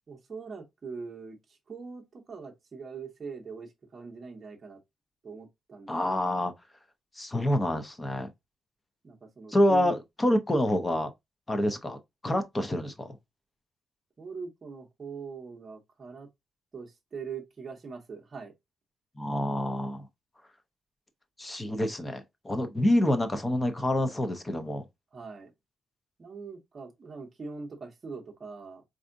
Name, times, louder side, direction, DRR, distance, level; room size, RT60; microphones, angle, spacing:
voice 1, 0.1-1.4 1.7-4.8 5.2-6.4 9.0-9.9 14.2-16.3 16.7-18.5 25.1-25.5 26.2-28.8, right 5 dB, 30° right, 0.7 m, -42 dB
voice 2, 5.9-6.5 7.2-8.3 9.5-11.1 11.5-13.2 19.2-20.1 21.4-24.8, left 1 dB, 15° left, 0.5 m, -27 dB
4.7 x 2.5 x 2.5 m
wide cardioid pair, 180°, 0 cm